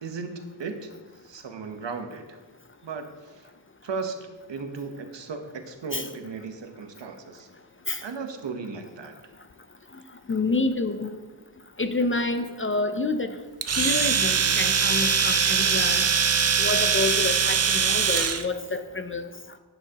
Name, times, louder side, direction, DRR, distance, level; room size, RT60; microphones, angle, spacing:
voice 1, 0.0-0.9 1.2-2.4 2.8-3.1 3.8-7.5 8.0-9.1, right 4 dB, 65° right, 6 dB, 1.0 m, -36 dB
voice 2, 10.3-11.1 11.8-13.3 13.8-16.0 16.6-19.3, left 3 dB, 30° left, 9 dB, 0.4 m, -28 dB
Domestic sounds home sounds, 13.6-18.5, right 6 dB, 35° right, 0.4 m, -22 dB
11.0 x 9.1 x 2.9 m, 1.3 s
wide cardioid pair, 130°, 46 cm